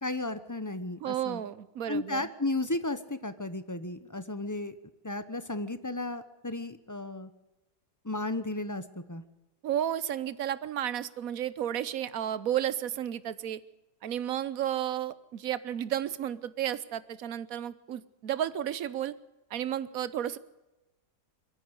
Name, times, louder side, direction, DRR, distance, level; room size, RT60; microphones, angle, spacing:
voice 1, 0.0-1.4 1.9-4.7 5.0-7.3 8.0-9.2, left 2 dB, 15° left, 12 dB, 0.8 m, -34 dB
voice 2, 1.0-2.3 9.6-13.6 14.0-19.2 19.5-20.4, right 10 dB, 65° right, 16 dB, 1.3 m, -32 dB
22.5 x 14.0 x 8.1 m, 1.0 s
omnidirectional pair, 1.7 m